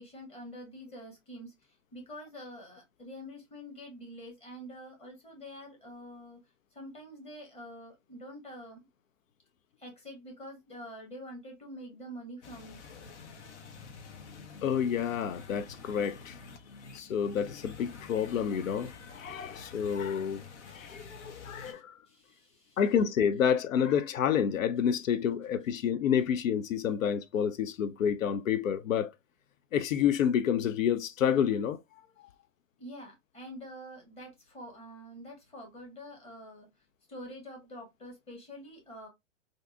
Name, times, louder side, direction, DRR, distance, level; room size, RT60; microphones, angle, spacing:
voice 1, 0.0-6.4 6.7-8.8 9.8-13.1 20.6-21.8 22.1-22.8 32.8-36.7 37.1-39.1, equal, 15° left, 1.5 m, -47 dB
sound 1, 12.4-21.7, left 5 dB, 65° left, 0.8 m, -49 dB
voice 2, 14.6-16.4 16.9-20.4 20.7-22.0 22.8-29.1 29.7-31.8, left 8 dB, 90° left, 0.5 m, -29 dB
3.4 x 2.6 x 2.4 m
hypercardioid pair, 130°, 38 cm